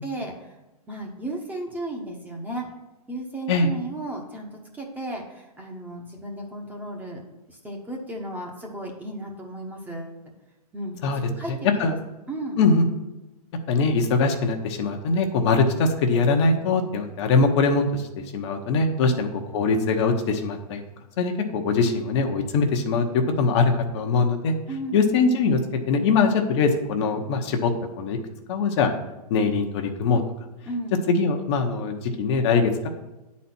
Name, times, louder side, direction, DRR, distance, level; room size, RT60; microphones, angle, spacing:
voice 1, 0.0-0.6 0.9-2.7 3.1-7.2 7.5-10.2 10.7-11.9 12.3-12.6 19.0-19.3 24.7-25.1 30.7-31.0, right 1 dB, 10° right, 0 dB, 1.1 m, -34 dB
voice 2, 11.5-11.9 12.6-12.9 13.7-18.1 18.3-19.3 19.5-20.8 21.2-24.5 24.9-27.7 28.0-28.2 28.5-28.9 29.3-30.2 31.1-32.9, left 4 dB, 45° left, 4 dB, 1.0 m, -22 dB
9.2 x 4.2 x 6.0 m, 1.0 s
hypercardioid pair, 140°, 20 cm